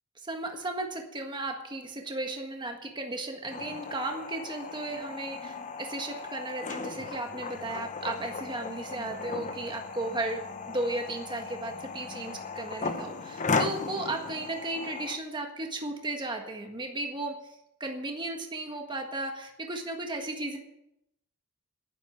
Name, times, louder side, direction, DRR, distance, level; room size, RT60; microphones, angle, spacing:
voice 1, 0.2-10.4 10.7-20.6, right 2 dB, 20° right, 3 dB, 1.6 m, -35 dB
sound 1, 3.5-15.2, left 4 dB, 35° left, 1.0 m, -36 dB
11.0 x 10.5 x 7.5 m, 0.82 s
head